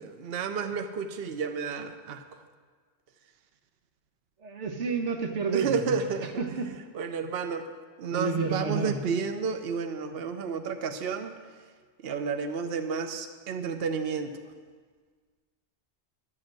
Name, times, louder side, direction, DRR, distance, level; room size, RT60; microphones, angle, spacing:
voice 1, 0.2-2.2 5.5-6.3 6.9-7.7 8.0-11.4 12.0-14.3, right 5 dB, 60° right, 7 dB, 1.0 m, -31 dB
voice 2, 4.4-6.7 8.1-9.0, right 4 dB, 90° right, 4 dB, 1.5 m, -30 dB
11.5 x 8.0 x 7.7 m, 1.6 s
omnidirectional pair, 1.2 m